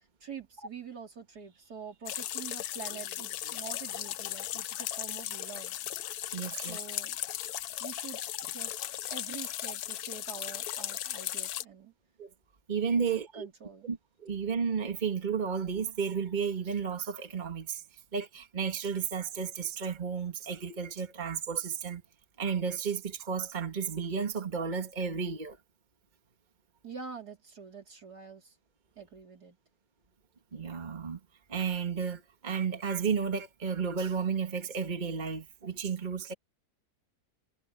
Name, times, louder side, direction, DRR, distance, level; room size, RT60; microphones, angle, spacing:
voice 1, 0.2-5.8 6.7-7.2 7.7-8.2 8.5-8.7 9.1-11.9 12.9-13.9 26.8-28.5 29.0-29.6, right 6 dB, 75° right, 4.1 m, -46 dB
sound 1, 2.1-11.6, left 12 dB, 75° left, 1.2 m, -37 dB
voice 2, 6.3-6.8 12.2-12.3 12.7-13.5 13.8-17.8 18.1-22.0 22.4-25.6 30.5-31.2 31.5-36.3, right 6 dB, 30° right, 1.8 m, -32 dB
omnidirectional pair, 1.7 m